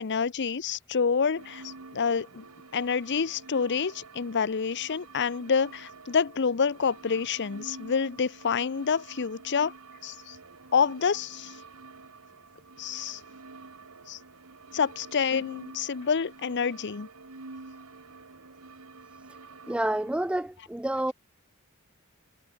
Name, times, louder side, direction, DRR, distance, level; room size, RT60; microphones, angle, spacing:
voice 1, 0.0-2.4 2.7-9.7 10.0-10.4 10.7-11.5 12.8-13.2 14.1-14.2 14.7-17.1, left 6 dB, 55° left, 0.7 m, -28 dB
sound 1, 1.3-20.4, right 3 dB, 85° right, 1.7 m, -48 dB
voice 2, 19.7-21.1, right 1 dB, 5° right, 0.3 m, -28 dB
head